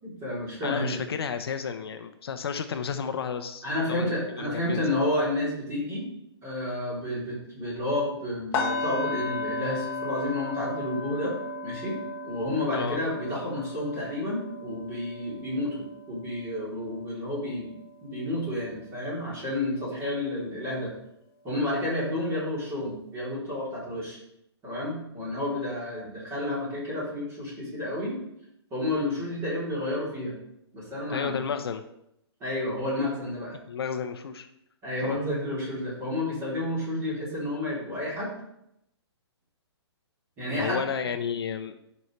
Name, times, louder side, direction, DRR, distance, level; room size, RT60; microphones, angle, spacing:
voice 1, 0.0-1.0 3.6-6.1 6.4-11.3 11.6-17.8 18.0-20.9 21.4-24.2 24.6-28.2 28.7-30.3 30.7-31.4 32.4-33.6 34.8-38.3 40.4-40.8, left 1 dB, 15° right, -6 dB, 3.2 m, -30 dB
voice 2, 0.6-3.6 3.9-4.8 12.7-13.0 31.1-31.8 33.7-34.5 35.0-35.2 40.5-41.7, left 7 dB, 60° left, 8 dB, 0.8 m, -32 dB
sound 1, 8.5-18.5 18.8-19.1 19.5-19.7, left 3 dB, 15° left, 1.4 m, -35 dB
10.5 x 5.6 x 3.2 m, 0.79 s
hypercardioid pair, 165°, 14 cm